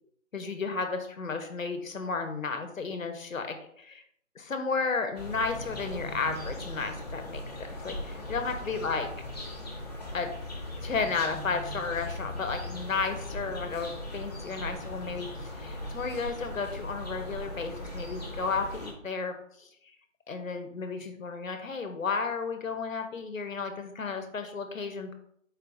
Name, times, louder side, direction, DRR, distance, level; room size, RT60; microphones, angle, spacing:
voice 1, 0.3-4.0 4.4-7.4 7.8-9.1 10.1-10.3 10.8-19.7 20.3-25.1, left 4 dB, 80° left, 6 dB, 0.9 m, -33 dB
sound 1, 5.1-18.9, left 1 dB, 30° left, 1.1 m, -39 dB
4.6 x 4.4 x 2.6 m, 0.68 s
figure-of-eight pair, 175°, 39 cm